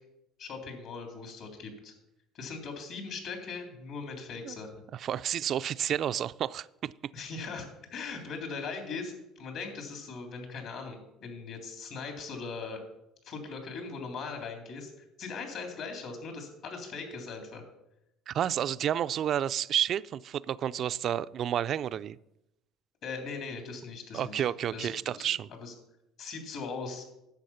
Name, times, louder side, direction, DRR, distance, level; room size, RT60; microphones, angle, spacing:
voice 1, 0.4-1.9 2.3-4.8 7.1-12.8 13.2-14.9 15.2-17.6 23.0-24.4 24.7-25.7 26.2-27.0, left 4 dB, 65° left, 3.2 m, -40 dB
voice 2, 4.9-6.9 18.3-22.2 24.1-25.5, right 10 dB, 50° right, 0.3 m, -30 dB
10.5 x 7.3 x 5.7 m
supercardioid pair, 90°, 0 cm